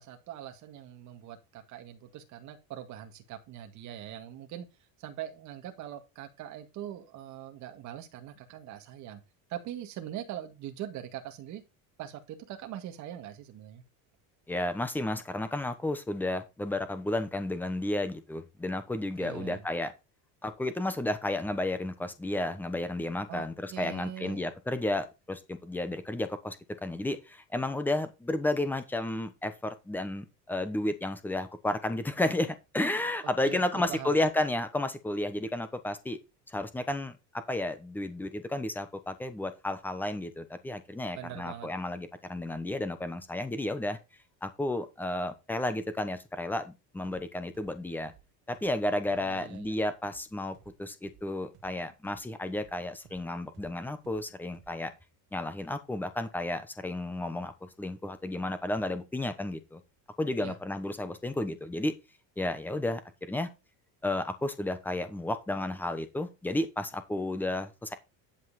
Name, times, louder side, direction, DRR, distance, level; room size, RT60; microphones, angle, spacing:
voice 1, 0.0-4.7 5.0-9.2 9.5-11.6 12.0-13.8 19.2-19.6 23.3-23.4 23.7-24.4 33.5-34.1 41.1-41.7 49.1-49.8 60.4-60.6, right 11 dB, 45° right, 6 dB, 2.1 m, -42 dB
voice 2, 14.5-19.9 20.4-36.2 36.5-44.0 44.4-48.1 48.5-54.9 55.3-59.8 60.2-61.9 62.4-63.5 64.0-67.9, left 1 dB, 5° left, 10 dB, 1.0 m, -32 dB
sound 1, 47.0-47.2 47.5-51.2 51.5-55.0, right 11 dB, 70° right, 2.2 m, -58 dB
11.0 x 5.6 x 4.2 m, 0.25 s
cardioid pair, 170°, 40 cm